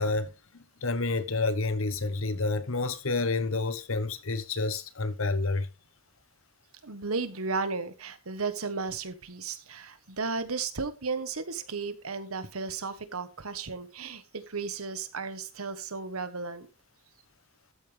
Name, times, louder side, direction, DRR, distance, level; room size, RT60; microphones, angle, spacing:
voice 1, 0.0-5.7, left 3 dB, 70° left, 1.1 m, -29 dB
voice 2, 6.8-16.7, right 4 dB, 90° right, 1.3 m, -34 dB
13.0 x 8.8 x 3.4 m
head